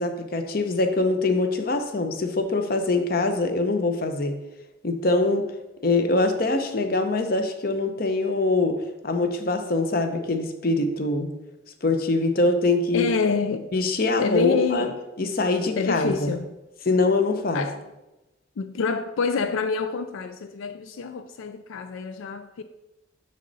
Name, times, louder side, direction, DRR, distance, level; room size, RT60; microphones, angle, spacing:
voice 1, 0.0-4.4 4.8-5.5 5.8-11.3 11.8-13.0 13.7-14.9 15.2-16.3 16.9-17.6, left 2 dB, 45° left, 0.7 m, -23 dB
voice 2, 12.9-13.7 14.2-15.0 15.7-16.5 17.5-17.8 18.6-22.6, left 5 dB, 80° left, 0.4 m, -27 dB
6.6 x 6.4 x 4.0 m
head